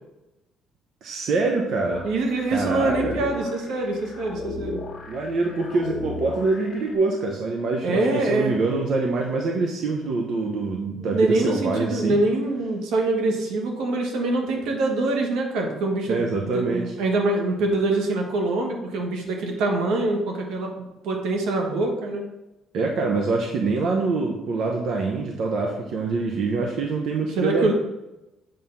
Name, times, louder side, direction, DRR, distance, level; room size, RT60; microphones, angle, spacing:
voice 1, 1.0-2.0 2.5-3.1 5.1-12.2 16.1-16.8 22.7-27.7, right 3 dB, 55° right, 1 dB, 0.9 m, -25 dB
sound 1, 1.9-6.9, left 3 dB, 35° left, 1.4 m, -36 dB
voice 2, 2.0-4.8 7.8-8.6 11.0-22.2 27.3-27.7, right 2 dB, 85° right, 1 dB, 1.6 m, -24 dB
7.6 x 3.6 x 5.7 m, 0.98 s
cardioid pair, 145°, 0 cm